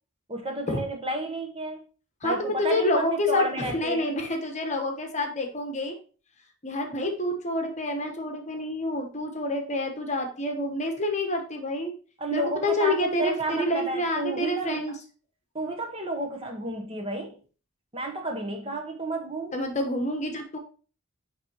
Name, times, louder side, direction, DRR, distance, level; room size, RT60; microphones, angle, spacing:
voice 1, 0.3-1.8 2.2-4.1 12.2-14.8 15.5-17.3 17.9-19.5, right 2 dB, 25° right, 0.8 m, -31 dB
voice 2, 2.2-5.9 6.6-11.9 12.3-14.9 19.5-20.6, left 1 dB, 30° left, 1.0 m, -28 dB
9.6 x 3.4 x 2.9 m
head